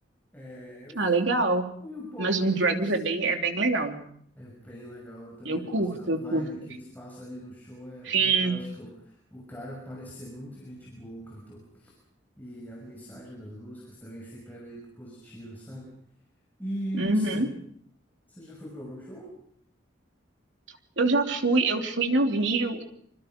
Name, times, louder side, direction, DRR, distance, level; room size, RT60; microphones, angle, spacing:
voice 1, 0.3-1.0 1.8-3.0 4.4-11.9 12.4-15.9 16.6-17.5 18.3-19.3, equal, 10° left, -2 dB, 6.1 m, -41 dB
voice 2, 0.9-1.6 2.2-4.0 5.4-6.5 8.1-8.5 17.0-17.5 21.0-22.8, right 3 dB, 75° right, 3 dB, 3.0 m, -25 dB
26.5 x 25.5 x 5.2 m, 0.65 s
head